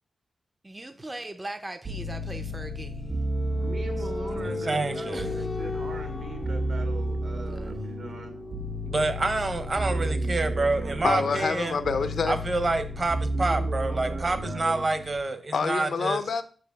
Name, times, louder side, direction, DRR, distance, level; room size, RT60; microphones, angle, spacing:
voice 1, 0.6-3.1 5.1-5.4 7.6-7.7, right 1 dB, 20° right, 0.5 m, -39 dB
sound 1, 1.8-15.2, right 1 dB, 55° right, 2.3 m, -32 dB
sound 2, 2.3-13.8, left 3 dB, 35° left, 0.4 m, -39 dB
voice 2, 3.6-8.4 9.9-11.4 13.3-14.8, right 3 dB, 70° right, 1.9 m, -40 dB
voice 3, 4.4-5.3 8.9-11.8 12.3-16.2, right 2 dB, 40° right, 1.0 m, -27 dB
voice 4, 11.0-12.4 15.5-16.4, left 5 dB, 75° left, 0.7 m, -27 dB
6.0 x 4.9 x 5.9 m
wide cardioid pair, 100°, 0 cm